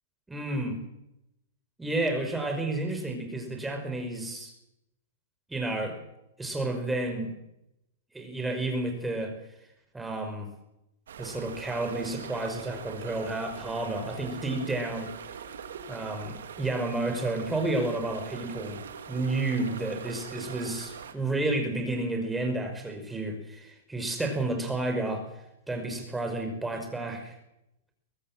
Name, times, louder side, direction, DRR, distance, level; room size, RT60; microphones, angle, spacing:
voice 1, 0.3-0.8 1.8-4.5 5.5-6.0 6.4-7.3 8.1-9.3 9.9-10.5 11.2-15.1 15.9-18.8 19.1-25.3 25.7-27.3, right 2 dB, 5° right, 4 dB, 5.4 m, -31 dB
sound 1, 11.1-21.1, right 7 dB, 85° right, 3.3 m, -42 dB
23.5 x 18.5 x 7.6 m, 0.84 s
hypercardioid pair, 150°, 0 cm